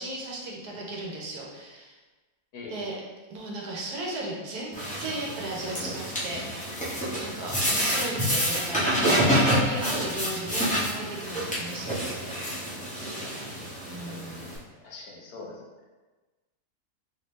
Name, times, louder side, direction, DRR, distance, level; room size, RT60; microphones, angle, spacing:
voice 1, 0.0-2.0 2.7-2.9 3.3-6.9 7.2-12.4 13.9-14.5, right 2 dB, 75° right, -2 dB, 1.2 m, -36 dB
voice 2, 2.5-2.9 13.2-13.5 14.8-15.6, left 3 dB, 75° left, -3 dB, 1.2 m, -43 dB
sound 1, 4.7-14.6, equal, 10° left, 0.5 m, -28 dB
3.4 x 2.7 x 3.0 m, 1.2 s
omnidirectional pair, 1.7 m